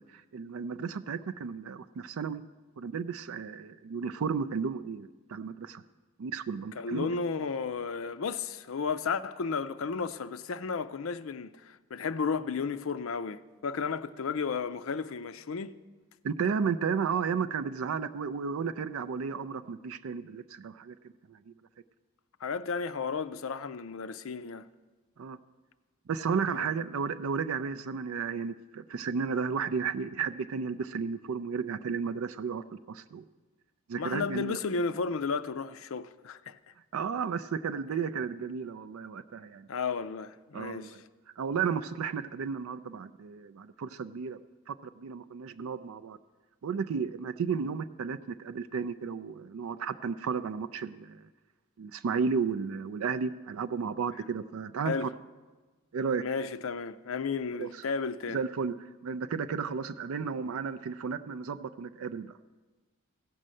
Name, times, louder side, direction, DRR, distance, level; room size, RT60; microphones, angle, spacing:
voice 1, 0.0-2.4 2.8-5.8 6.2-7.2 16.2-21.5 25.2-25.4 26.1-33.2 33.9-34.6 36.9-39.7 40.5-41.0 41.4-44.4 44.7-46.2 46.6-51.2 51.8-55.1 55.9-56.2 57.5-57.8 58.3-58.7 59.0-62.4, right 6 dB, 75° right, 0.4 m, -33 dB
voice 2, 6.8-15.7 22.4-24.6 26.5-26.8 34.0-36.6 39.7-41.0 54.8-55.1 56.2-58.4, left 5 dB, 70° left, 0.5 m, -33 dB
15.5 x 5.4 x 7.6 m
head